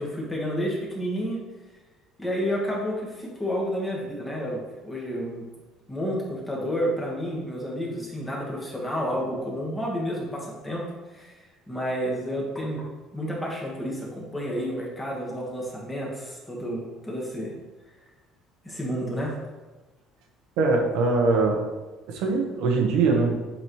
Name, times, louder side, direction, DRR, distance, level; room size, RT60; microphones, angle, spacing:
voice 1, 0.0-1.4 2.2-5.5 5.9-10.9 11.1-11.3 11.7-12.9 13.1-17.5 18.6-19.3, equal, 10° left, -3 dB, 1.4 m, -30 dB
voice 2, 20.6-21.6 22.1-23.3, right 3 dB, 80° right, 2 dB, 1.0 m, -22 dB
7.4 x 4.2 x 3.1 m, 1.2 s
cardioid pair, 150°, 0 cm